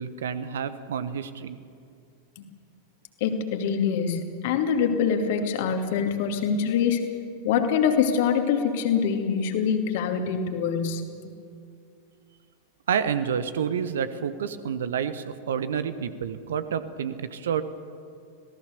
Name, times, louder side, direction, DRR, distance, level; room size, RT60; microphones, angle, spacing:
voice 1, 0.0-1.6 12.9-17.6, right 7 dB, 60° right, 13 dB, 1.1 m, -29 dB
voice 2, 3.2-7.1 7.4-11.0, left 7 dB, 50° left, 5 dB, 2.6 m, -24 dB
26.0 x 17.5 x 6.9 m, 2.4 s
figure-of-eight pair, 90°, 0 cm